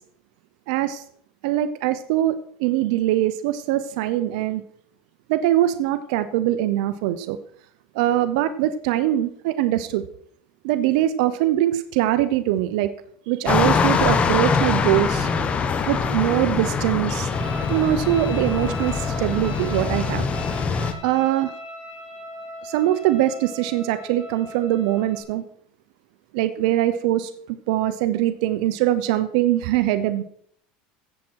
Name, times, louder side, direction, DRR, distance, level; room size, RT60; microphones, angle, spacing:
voice 1, 0.7-1.0 1.4-4.6 5.3-7.4 7.9-10.0 10.6-12.9 13.3-15.3 15.9-17.3 17.7-20.3 20.7-21.5 22.6-25.4 26.3-30.2, right 13 dB, 75° right, 12 dB, 0.8 m, -22 dB
sound 1, 13.5-20.9, left 5 dB, 30° left, 1.6 m, -23 dB
sound 2, 17.3-25.2, left 1 dB, 5° left, 5.0 m, -38 dB
16.0 x 7.5 x 4.7 m, 0.63 s
supercardioid pair, 120°, 4 cm